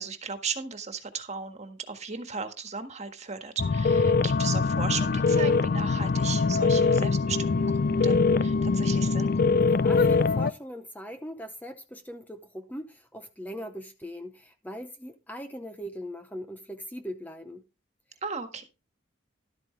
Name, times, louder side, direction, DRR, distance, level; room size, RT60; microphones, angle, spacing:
voice 1, 0.0-9.3 18.2-18.6, right 5 dB, 35° right, 1.6 m, -36 dB
sound 1, 3.6-10.5, left 4 dB, 50° left, 0.4 m, -23 dB
voice 2, 9.6-17.6, equal, 10° left, 0.7 m, -40 dB
12.5 x 8.7 x 3.3 m
head